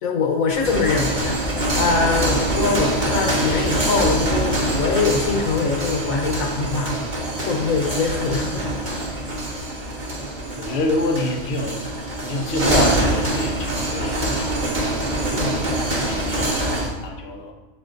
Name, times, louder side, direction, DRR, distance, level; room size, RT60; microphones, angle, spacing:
voice 1, 0.0-6.9 7.5-8.6 15.3-15.6, left 4 dB, 85° left, 2 dB, 1.2 m, -23 dB
sound 1, 0.5-16.9, right 1 dB, 35° right, 1.3 m, -24 dB
voice 2, 10.5-11.8 12.2-14.9 15.3-17.5, left 2 dB, 55° left, 2 dB, 1.0 m, -27 dB
7.9 x 4.7 x 2.5 m, 1.2 s
omnidirectional pair, 1.4 m